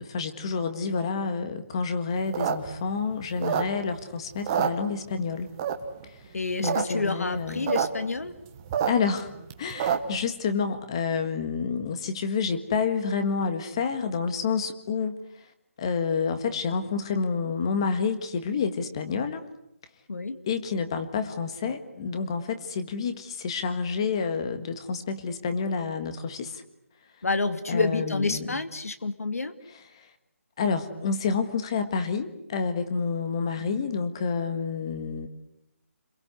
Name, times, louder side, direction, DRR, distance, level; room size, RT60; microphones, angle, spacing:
voice 1, 0.0-5.5 6.0-6.2 6.6-7.7 8.9-9.3 9.6-15.2 15.8-19.5 20.5-26.6 27.7-28.6 29.7-30.1 30.6-35.3, left 5 dB, 20° left, 9 dB, 1.6 m, -29 dB
sound 1, 2.2-4.0 4.3-5.2 5.6-6.0 6.4-6.8 7.1-7.2 7.3-7.9 8.2-10.2, right 8 dB, 15° right, 1.2 m, -27 dB
voice 2, 6.3-8.3 20.1-20.4 27.2-29.5, left 3 dB, 75° left, 10 dB, 2.5 m, -28 dB
30.0 x 22.5 x 8.2 m, 0.80 s
hypercardioid pair, 175°, 8 cm